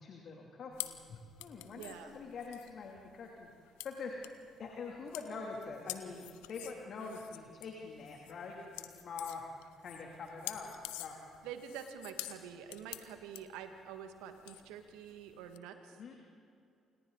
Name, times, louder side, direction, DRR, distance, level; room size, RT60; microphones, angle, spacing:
voice 1, 0.0-3.5 3.8-4.1 4.6-9.4 9.8-10.7 11.0-11.2 16.0-16.1, left 4 dB, 55° left, 0 dB, 3.0 m, -45 dB
sound 1, 0.7-15.6, left 17 dB, 75° left, 0.9 m, -48 dB
voice 2, 1.8-2.2 7.0-7.2 11.4-16.1, right 8 dB, 75° right, 7 dB, 2.0 m, -47 dB
28.5 x 28.0 x 4.1 m, 2.5 s
hypercardioid pair, 45°, 0 cm